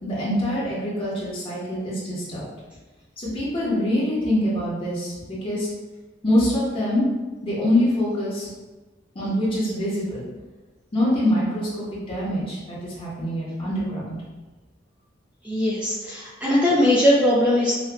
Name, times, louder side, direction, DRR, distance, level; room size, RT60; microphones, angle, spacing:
voice 1, 0.0-2.4 3.2-5.7 6.2-7.1 7.4-8.5 9.1-10.2 10.9-14.1, left 1 dB, 30° left, -8 dB, 1.3 m, -24 dB
voice 2, 15.4-17.7, left 1 dB, 5° right, -6 dB, 0.4 m, -20 dB
5.5 x 2.5 x 2.3 m, 1.2 s
head